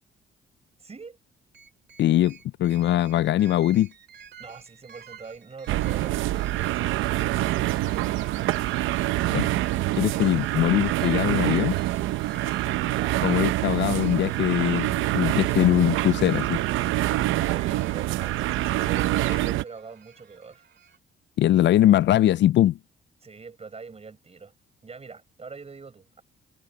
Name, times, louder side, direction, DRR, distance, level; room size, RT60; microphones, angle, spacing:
voice 1, 0.8-1.2 4.4-7.7 12.9-13.3 17.1-20.7 23.2-24.5 24.8-26.2, right 4 dB, 30° right, 6.1 m, -44 dB
sound 1, 1.5-21.0, right 8 dB, 60° right, 2.6 m, -49 dB
voice 2, 2.0-3.9 9.3-9.5 10.0-11.8 13.2-16.6 21.4-22.8, left 13 dB, 65° left, 0.4 m, -21 dB
sound 2, 5.7-19.6, right 16 dB, 90° right, 0.7 m, -26 dB
cardioid pair, 90°, 20 cm